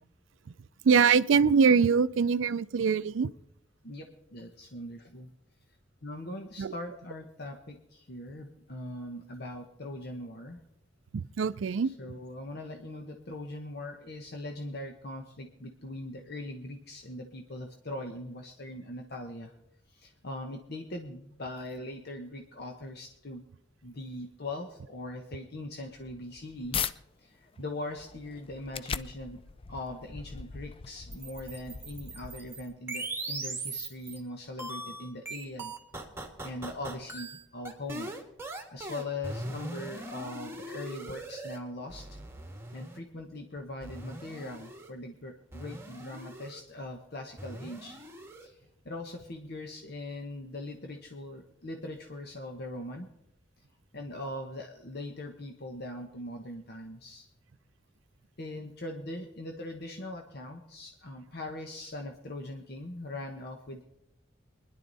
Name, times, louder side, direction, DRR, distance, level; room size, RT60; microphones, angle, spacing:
voice 1, 0.8-3.3 6.6-6.7 11.1-11.9, right 6 dB, 90° right, 16 dB, 0.4 m, -23 dB
voice 2, 3.8-5.3 6.0-10.6 11.8-19.5 19.9-23.5 23.8-26.8 27.2-29.4 29.7-35.7 36.4-38.1 38.7-42.1 42.7-48.0 48.4-48.6 48.8-53.1 53.9-57.3 58.4-63.8, left 1 dB, 60° left, 3 dB, 1.1 m, -41 dB
sound 1, 25.9-26.9 27.5-32.7, left 6 dB, 30° left, 0.4 m, -39 dB
sound 2, 31.1-34.2 34.6-41.6 41.9-43.0 43.8-44.9 45.5-46.6 47.4-48.5, right 2 dB, 15° right, 1.7 m, -40 dB
24.0 x 10.5 x 4.1 m, 0.80 s
head